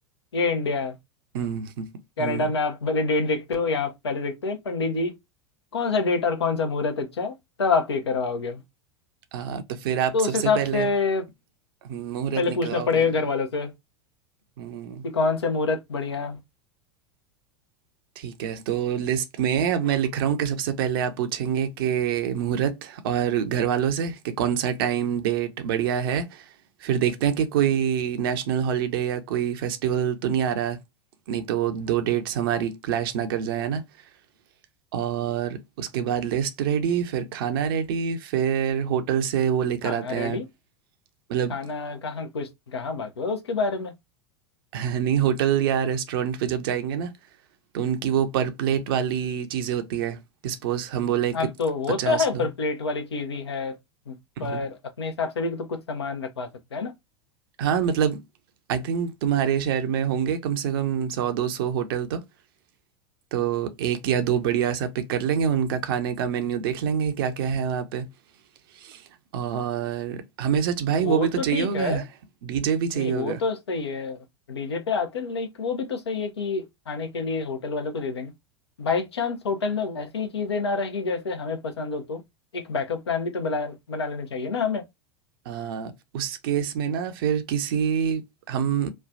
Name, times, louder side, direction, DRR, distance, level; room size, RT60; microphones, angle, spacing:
voice 1, 0.3-0.9 2.2-5.1 5.7-8.6 10.1-11.2 12.4-13.7 15.0-16.4 39.8-40.4 41.5-43.9 51.3-53.8 54.1-54.2 54.4-56.9 71.0-72.0 72.9-74.2 74.5-78.3 78.8-82.2 82.5-84.8, left 4 dB, 75° left, 0.7 m, -27 dB
voice 2, 1.3-1.9 2.2-2.5 9.3-10.9 11.8-13.1 14.6-15.0 18.2-26.4 26.8-30.8 31.3-33.8 34.9-40.4 41.3-41.6 44.7-47.1 47.7-51.5 52.0-52.5 54.4-54.6 57.6-58.2 58.7-62.2 63.3-68.1 68.8-69.0 69.3-72.0 72.4-73.4 85.5-88.2 88.5-88.9, right 8 dB, 60° right, 0.6 m, -26 dB
3.2 x 2.2 x 2.5 m
figure-of-eight pair, 85°, 14 cm